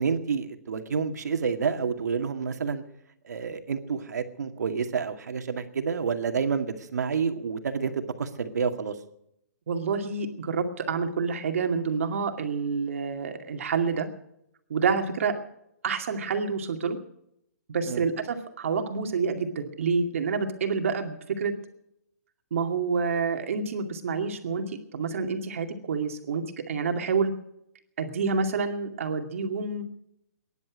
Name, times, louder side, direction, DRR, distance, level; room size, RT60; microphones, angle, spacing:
voice 1, 0.0-2.8 3.2-8.9 17.9-18.0, right 6 dB, 85° right, 6 dB, 2.1 m, -29 dB
voice 2, 9.7-14.1 14.7-15.3 15.8-17.0 17.7-21.5 22.5-27.3 28.0-29.8, right 5 dB, 55° right, 5 dB, 2.3 m, -28 dB
21.0 x 11.0 x 6.2 m, 0.78 s
hypercardioid pair, 175°, 9 cm